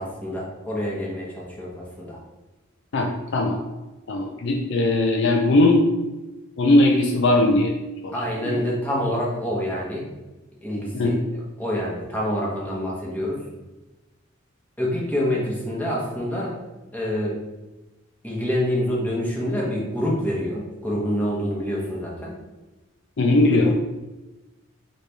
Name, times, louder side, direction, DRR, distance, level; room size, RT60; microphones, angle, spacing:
voice 1, 0.0-2.2 8.1-10.0 10.6-11.1 11.6-13.4 14.8-16.5 16.9-17.3 18.2-22.3, equal, 10° left, -5 dB, 1.0 m, -26 dB
voice 2, 2.9-3.6 4.1-5.9 6.6-7.7 8.0-8.6 10.9-11.2 23.2-23.7, left 2 dB, 60° left, 2 dB, 0.5 m, -19 dB
4.1 x 3.2 x 3.4 m, 1.1 s
head